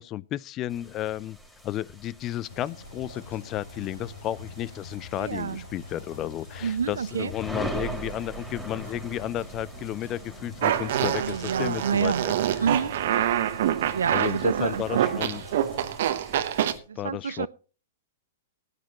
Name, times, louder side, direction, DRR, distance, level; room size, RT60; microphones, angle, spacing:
voice 1, 0.0-1.4 1.6-12.3 14.1-15.4 17.0-17.5, left 13 dB, 35° left, 0.4 m, -33 dB
sound 1, 0.7-16.8, right 1 dB, 5° left, 3.6 m, -42 dB
sound 2, 2.5-15.9, left 1 dB, 85° left, 4.7 m, -45 dB
voice 2, 5.2-5.6 6.6-7.3 11.1-12.3 12.6-12.9 13.9-15.2 16.9-17.5, right 7 dB, 80° right, 0.5 m, -28 dB
Fart, 10.6-16.7, right 11 dB, 60° right, 0.9 m, -26 dB
17.5 x 9.4 x 3.0 m
hypercardioid pair, 110°, 0 cm